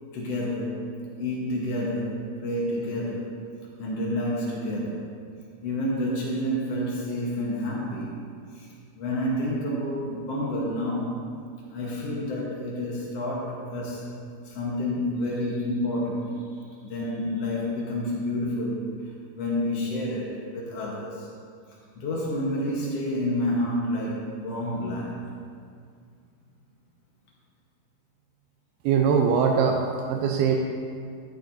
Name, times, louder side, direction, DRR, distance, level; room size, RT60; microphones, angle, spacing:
voice 1, 0.1-3.3 3.8-5.1 5.6-8.1 8.5-8.7 8.9-11.2 11.7-14.1 14.4-16.4 16.8-18.9 19.3-21.3 21.9-25.2, left 1 dB, 90° left, -4 dB, 1.3 m, -29 dB
voice 2, 28.8-29.8 30.1-30.6, right 6 dB, 80° right, 2 dB, 2.5 m, -21 dB
12.0 x 9.7 x 2.6 m, 2.2 s
omnidirectional pair, 4.6 m